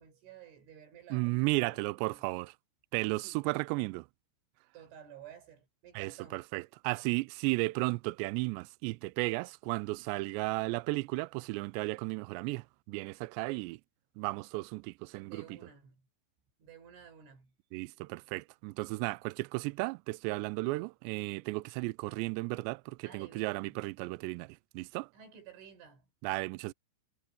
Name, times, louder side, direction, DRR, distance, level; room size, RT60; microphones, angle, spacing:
voice 1, 0.0-2.2 3.2-3.4 4.7-6.4 15.2-16.0 16.6-17.5 23.0-23.8 25.1-26.1, right 8 dB, 75° right, 7.8 m, -53 dB
voice 2, 1.1-2.5 2.9-4.1 5.9-13.8 14.2-15.6 17.7-25.1 26.2-26.7, right 24 dB, 90° right, 2.5 m, -34 dB
omnidirectional pair, 5.6 m